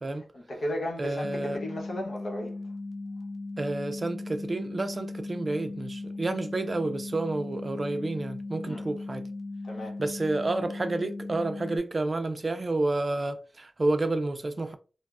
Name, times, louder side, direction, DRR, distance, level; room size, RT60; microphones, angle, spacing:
voice 1, 0.3-2.6 8.6-8.9 9.6-10.0, left 1 dB, 80° left, 0.8 m, -35 dB
voice 2, 1.0-1.7 3.6-9.2 10.0-14.8, right 2 dB, 45° right, 0.3 m, -30 dB
sound 1, 1.2-11.8, left 2 dB, 25° left, 0.5 m, -38 dB
3.2 x 2.0 x 2.4 m
wide cardioid pair, 75°, 0 cm